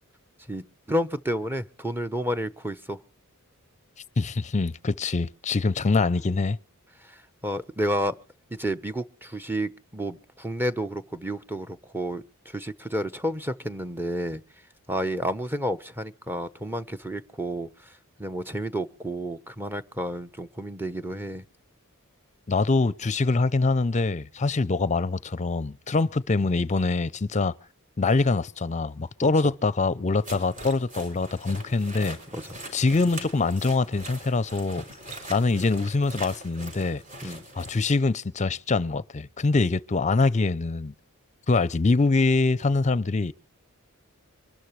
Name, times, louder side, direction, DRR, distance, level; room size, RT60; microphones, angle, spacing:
voice 1, 0.5-3.0 7.0-8.1 8.5-14.4 14.9-17.9 18.2-21.4 29.2-29.5 32.3-32.4 37.2-37.4, equal, 10° right, 0.9 m, -31 dB
voice 2, 4.2-6.6 22.5-27.5 28.0-32.2 32.7-34.8 35.3-40.9 41.5-43.3, left 3 dB, 35° left, 0.6 m, -24 dB
sound 1, 30.2-37.8, right 1 dB, 35° right, 5.8 m, -42 dB
24.5 x 13.0 x 3.2 m
head